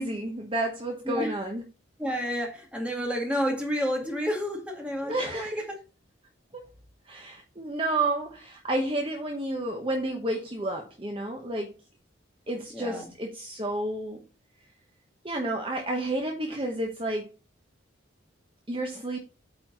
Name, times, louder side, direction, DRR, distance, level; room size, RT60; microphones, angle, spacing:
voice 1, 0.0-1.6 5.0-5.6 6.5-6.6 7.1-11.7 12.5-14.2 15.2-17.3 18.7-19.2, right 1 dB, 25° right, 1.0 m, -30 dB
voice 2, 2.0-5.6 12.7-13.1, equal, 5° right, 1.9 m, -30 dB
8.9 x 4.3 x 4.3 m
head